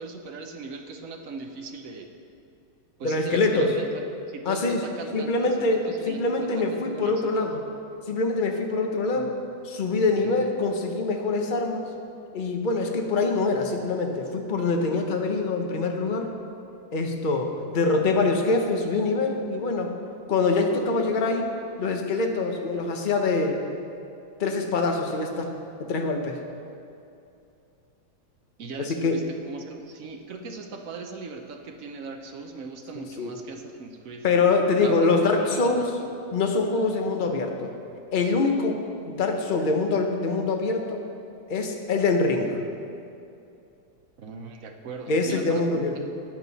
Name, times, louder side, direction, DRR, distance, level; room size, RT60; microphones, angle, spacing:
voice 1, 0.0-2.1 3.0-3.9 4.3-6.2 6.7-7.3 9.1-9.3 10.2-10.4 28.6-29.2 29.5-34.2 34.8-35.1 35.4-36.1 44.2-46.0, right 4 dB, 55° right, 4 dB, 1.0 m, -39 dB
voice 2, 3.0-3.8 4.4-4.8 5.1-7.6 8.1-9.4 9.7-11.8 12.3-16.3 16.9-19.9 20.3-21.5 21.8-23.6 24.4-25.5 25.8-26.4 28.8-29.2 33.2-33.3 34.2-35.9 36.3-37.7 38.1-41.0 41.5-42.6 45.1-45.9, left 3 dB, 40° left, 3 dB, 0.7 m, -24 dB
13.5 x 9.1 x 4.1 m, 2.7 s
omnidirectional pair, 2.1 m